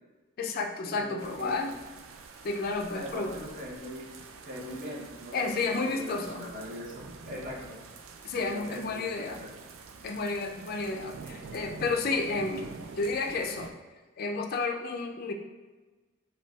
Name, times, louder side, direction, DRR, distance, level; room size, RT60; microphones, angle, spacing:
voice 1, 0.4-1.8 2.4-3.4 5.3-6.5 8.2-9.4 10.0-12.7 13.0-13.7 14.2-15.3, left 3 dB, 50° left, 4 dB, 0.3 m, -31 dB
voice 2, 1.0-1.7 2.9-4.1 4.4-7.8 8.4-9.5, left 1 dB, 40° right, -4 dB, 0.8 m, -41 dB
sound 1, 1.2-13.7, right 4 dB, 90° right, 0.4 m, -47 dB
5.2 x 2.2 x 2.3 m, 1.3 s
head